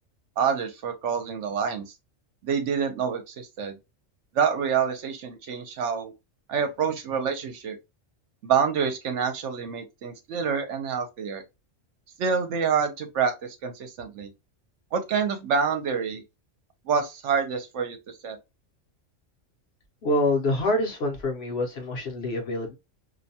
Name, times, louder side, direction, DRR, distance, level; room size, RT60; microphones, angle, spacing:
voice 1, 0.4-1.8 2.4-3.8 4.3-6.1 6.5-7.8 8.4-11.4 12.2-14.3 14.9-16.2 16.9-18.4, right 6 dB, 70° right, 0.9 m, -27 dB
voice 2, 20.0-22.8, left 1 dB, 60° left, 1.0 m, -26 dB
2.6 x 2.2 x 2.6 m
omnidirectional pair, 1.3 m